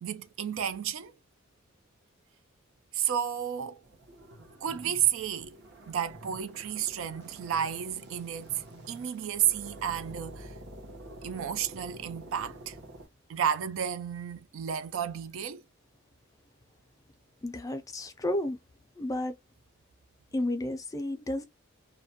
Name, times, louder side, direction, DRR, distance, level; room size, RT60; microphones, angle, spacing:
voice 1, 0.0-1.1 2.9-3.8 4.6-5.6 5.9-10.5 11.2-12.8 13.3-15.6, right 9 dB, 75° right, 0.4 m, -32 dB
sound 1, 3.8-13.1, right 1 dB, 60° right, 0.9 m, -48 dB
voice 2, 17.4-18.6 19.0-19.3 20.3-21.4, left 1 dB, 15° left, 0.3 m, -32 dB
2.4 x 2.1 x 2.7 m
head